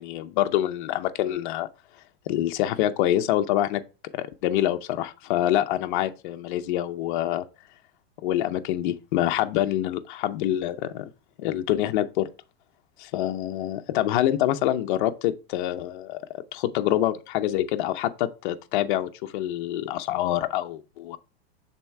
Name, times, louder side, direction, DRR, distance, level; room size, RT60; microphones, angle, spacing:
voice 1, 0.0-1.7 2.3-3.8 4.1-7.5 8.2-11.1 11.4-12.3 13.0-16.2 16.5-21.2, left 13 dB, 50° left, 0.7 m, -26 dB
6.9 x 3.5 x 4.6 m
supercardioid pair, 150°, 32 cm